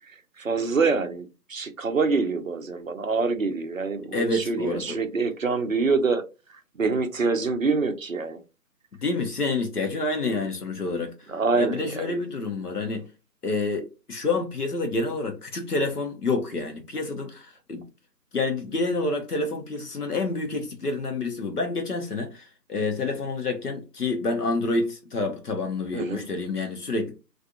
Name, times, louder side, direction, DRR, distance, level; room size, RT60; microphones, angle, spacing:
voice 1, 0.1-6.2 6.8-8.4 11.3-12.2 25.9-26.2, right 4 dB, 55° right, 0.5 m, -26 dB
voice 2, 4.1-5.0 9.0-11.1 11.6-13.1 13.4-17.8 18.3-27.1, left 3 dB, 65° left, 0.9 m, -28 dB
2.5 x 2.3 x 2.6 m
figure-of-eight pair, 155°, 50 cm